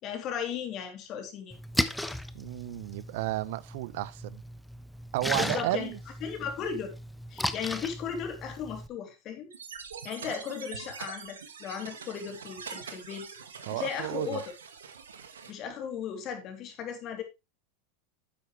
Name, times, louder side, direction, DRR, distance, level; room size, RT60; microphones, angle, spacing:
voice 1, 0.0-1.6 5.3-5.9 6.2-6.9 7.3-9.5 10.0-13.3 13.7-14.4 15.5-17.2, left 7 dB, 45° left, 3.1 m, -36 dB
Splash splatter, 1.5-8.9, left 1 dB, 5° left, 0.9 m, -36 dB
voice 2, 2.3-4.4 5.1-6.0 10.3-10.4 13.7-14.4, right 18 dB, 65° right, 0.5 m, -32 dB
sound 1, 9.5-15.5, right 6 dB, 85° right, 1.7 m, -44 dB
10.5 x 7.9 x 3.2 m
hypercardioid pair, 95°, 0 cm